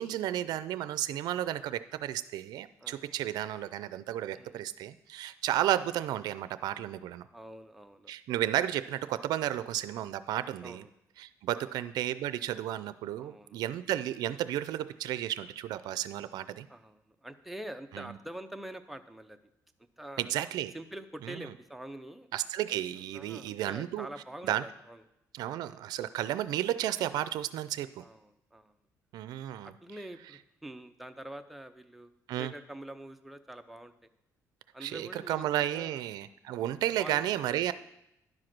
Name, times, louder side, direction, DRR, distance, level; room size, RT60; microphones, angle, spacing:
voice 1, 0.0-7.2 8.1-10.8 11.2-16.7 20.2-20.7 21.3-21.4 22.3-24.1 24.4-24.6 25.3-28.0 29.1-29.7 32.3-32.5 34.8-37.7, right 12 dB, 75° right, 14 dB, 0.4 m, -33 dB
voice 2, 2.8-3.1 4.3-4.7 7.3-8.1 10.6-10.9 11.6-11.8 13.2-13.6 16.7-19.4 20.0-20.3 20.7-22.3 23.0-25.0 28.0-28.8 29.6-32.1 32.4-33.9 34.7-36.0 37.0-37.3, right 1 dB, ahead, 7 dB, 0.6 m, -45 dB
10.5 x 4.9 x 6.0 m, 0.83 s
cardioid pair, 115°, 7 cm